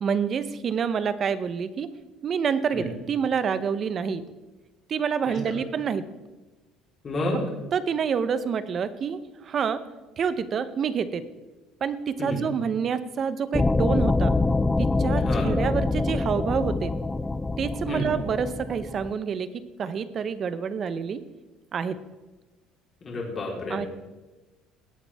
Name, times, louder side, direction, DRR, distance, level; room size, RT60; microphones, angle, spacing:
voice 1, 0.0-1.9 2.2-4.2 4.9-6.0 7.7-9.8 10.2-11.2 11.8-14.3 14.8-16.9 17.6-19.5 19.8-21.2 21.7-22.0 23.7-23.9, right 7 dB, 35° right, 13 dB, 0.8 m, -27 dB
voice 2, 7.0-7.4 12.2-12.4 15.2-15.4 17.9-18.1 23.0-23.8, left 1 dB, 30° left, -2 dB, 3.9 m, -30 dB
sound 1, 13.5-19.1, left 3 dB, 10° left, 0.4 m, -25 dB
18.5 x 8.3 x 3.5 m, 1.1 s
cardioid pair, 130°, 0 cm